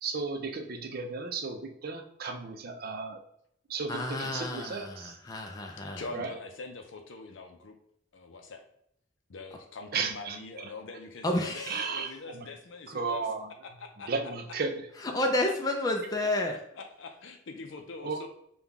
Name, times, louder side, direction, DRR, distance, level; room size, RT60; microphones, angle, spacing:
voice 1, 0.0-3.2 3.7-5.2 6.1-6.3 9.9-10.4 11.7-12.5 12.9-13.5 14.1-14.8 18.0-18.3, right 4 dB, 50° right, 5 dB, 0.5 m, -34 dB
voice 2, 3.9-6.0 11.2-11.9 15.1-16.6, left 1 dB, 20° left, 2 dB, 0.4 m, -30 dB
voice 3, 6.0-7.8 8.1-8.6 9.3-13.3 13.8-14.1 16.2-16.3 16.7-18.3, left 3 dB, 70° left, 4 dB, 0.5 m, -44 dB
5.5 x 2.3 x 3.5 m, 0.71 s
head